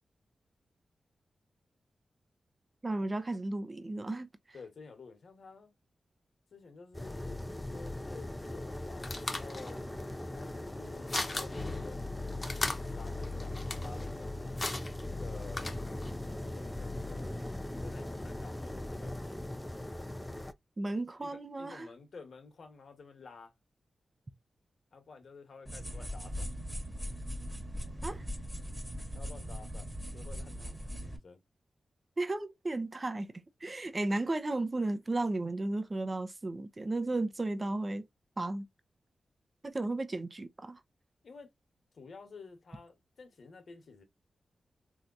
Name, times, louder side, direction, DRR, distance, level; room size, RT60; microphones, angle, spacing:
voice 1, 2.8-4.3 20.8-21.9 28.0-28.2 32.2-33.3 33.6-38.1 38.4-38.7 39.6-40.8, right 2 dB, 35° right, 0.6 m, -34 dB
voice 2, 4.5-5.7 6.5-9.8 10.3-12.1 12.5-14.6 15.1-15.7 16.3-17.4 17.8-19.5 21.2-23.5 24.9-26.5 29.1-31.4 41.2-41.5 41.9-44.0, left 4 dB, 70° left, 1.1 m, -51 dB
sound 1, 6.9-20.5, left 1 dB, 10° left, 0.5 m, -39 dB
sound 2, 8.5-16.2, left 2 dB, 35° left, 0.9 m, -40 dB
sound 3, 25.7-31.2, equal, 5° right, 1.3 m, -40 dB
3.3 x 2.8 x 2.4 m
cardioid pair, 60°, 0 cm